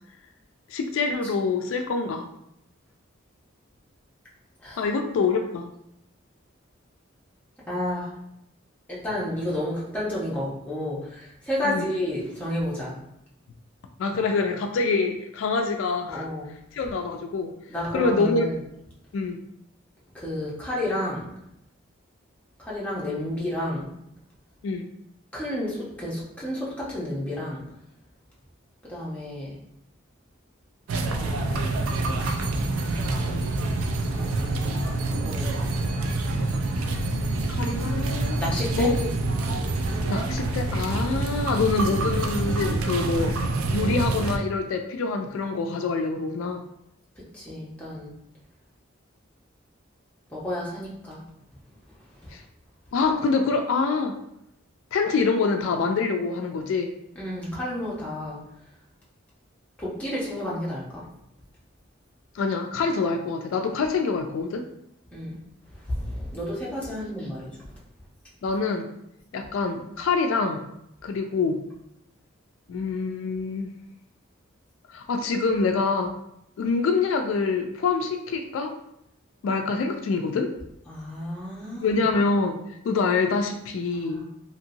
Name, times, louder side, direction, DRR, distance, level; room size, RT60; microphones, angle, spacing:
voice 1, 0.7-2.3 4.8-5.7 11.6-11.9 14.0-16.3 16.7-17.5 17.9-18.5 19.1-19.4 24.6-24.9 37.5-38.4 38.7-39.1 40.1-43.4 43.7-46.6 52.3-52.4 52.9-54.2 54.9-56.9 62.3-64.7 68.4-68.9 69.3-70.6 71.0-71.6 72.7-73.7 74.9-76.1 76.6-78.7 79.4-80.5 81.8-84.2, left 4 dB, 75° left, 5 dB, 0.3 m, -25 dB
voice 2, 7.7-8.1 8.9-12.9 16.1-16.5 17.7-18.6 20.1-21.3 22.6-23.9 25.3-27.6 28.8-29.5 31.2-31.9 33.0-33.2 34.1-35.8 38.4-38.9 47.3-48.1 50.3-51.2 52.2-52.3 57.1-58.4 59.8-61.1 65.1-65.4 65.7-67.5 80.9-82.0 84.0-84.2, left 1 dB, 5° left, -7 dB, 0.7 m, -31 dB
sound 1, 30.9-44.4, right 2 dB, 90° right, 0.4 m, -26 dB
2.9 x 2.8 x 2.6 m, 0.79 s
head